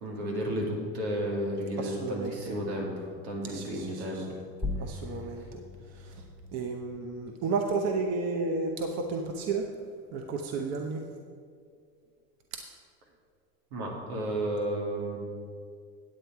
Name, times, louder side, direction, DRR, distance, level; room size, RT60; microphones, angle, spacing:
voice 1, 0.0-4.3 13.7-15.2, right 1 dB, 85° right, -1 dB, 2.5 m, -32 dB
voice 2, 1.8-2.6 3.4-4.4 4.8-6.3 6.5-9.7 10.1-11.0 12.5-12.6, right 4 dB, 55° right, 4 dB, 0.9 m, -33 dB
sound 1, 4.6-9.7, left 2 dB, 10° right, 0.9 m, -41 dB
9.1 x 8.2 x 4.7 m, 2.1 s
supercardioid pair, 105°, 31 cm